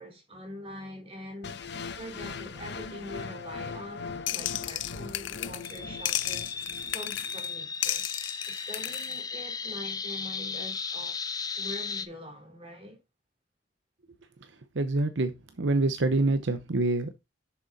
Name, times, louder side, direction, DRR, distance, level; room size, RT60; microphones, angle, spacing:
voice 1, 0.0-1.6 2.0-11.2 11.5-13.0, equal, 30° right, 3.7 m, -44 dB
sound 1, 1.4-7.4, left 4 dB, 65° left, 1.0 m, -40 dB
sound 2, 4.3-5.8 6.1-7.5 7.8-9.1, left 14 dB, 80° left, 0.5 m, -33 dB
sound 3, 5.6-12.1, left 5 dB, 20° left, 0.6 m, -36 dB
voice 2, 14.7-15.3 15.6-17.2, right 2 dB, 75° right, 0.8 m, -26 dB
7.1 x 6.5 x 4.0 m
head